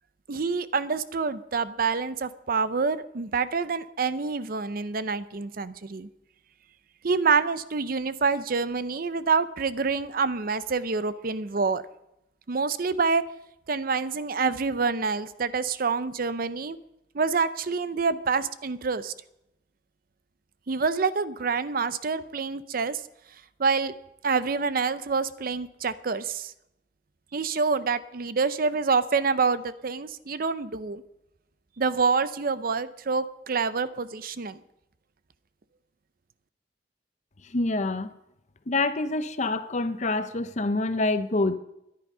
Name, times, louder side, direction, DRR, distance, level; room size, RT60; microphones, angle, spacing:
voice 1, 0.3-6.1 7.0-11.8 12.5-13.2 13.7-16.8 17.1-19.1 20.7-23.0 23.6-23.9 24.2-26.5 27.3-31.0 31.8-34.6, right 4 dB, 55° right, 14 dB, 0.6 m, -27 dB
voice 2, 37.5-38.1 38.7-41.5, left 2 dB, 45° left, 12 dB, 0.8 m, -26 dB
13.0 x 10.5 x 5.5 m, 0.85 s
head